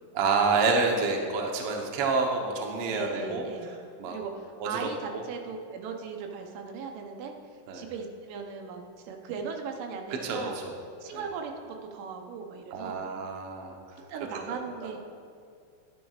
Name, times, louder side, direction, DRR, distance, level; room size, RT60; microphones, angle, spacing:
voice 1, 0.1-3.5 4.0-4.1 4.6-4.9 5.1-5.2 7.7-7.8 10.2-10.7 11.1-11.2 12.7-13.8, right 4 dB, 65° right, 2 dB, 1.5 m, -28 dB
voice 2, 2.9-3.8 4.1-7.3 7.7-10.6 11.0-13.0 14.1-15.0, right 5 dB, 85° right, 3 dB, 2.4 m, -38 dB
12.0 x 10.5 x 2.4 m, 2.4 s
omnidirectional pair, 3.8 m